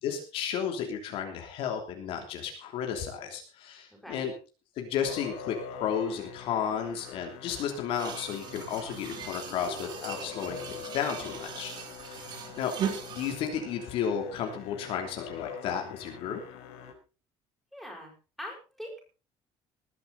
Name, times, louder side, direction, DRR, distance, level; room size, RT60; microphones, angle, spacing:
voice 1, 0.0-4.3 4.8-5.5 5.8-11.7 12.0-12.7 13.1-16.4, left 8 dB, 55° left, 3 dB, 3.1 m, -33 dB
Musical instrument, 5.0-16.9, left 7 dB, 85° left, 5.7 m, -44 dB
sound 1, 8.0-13.4, right 7 dB, 40° right, 3.5 m, -39 dB
voice 2, 17.7-18.1 18.4-19.0, equal, ahead, -1 dB, 6.1 m, -42 dB
20.0 x 11.0 x 4.1 m, 0.34 s
cardioid pair, 180°, 11 cm